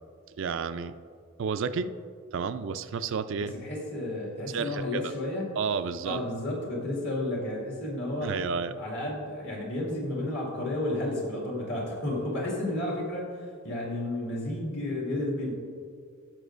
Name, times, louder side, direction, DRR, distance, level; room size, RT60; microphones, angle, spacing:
voice 1, 0.4-0.9 1.4-1.9 2.3-3.6 4.5-4.8 5.6-6.2 8.2-8.8, right 5 dB, 60° right, 10 dB, 0.4 m, -31 dB
voice 2, 3.4-5.5 6.0-8.4 8.8-15.5, left 1 dB, 55° left, -3 dB, 2.1 m, -32 dB
17.5 x 6.2 x 2.5 m, 2.2 s
head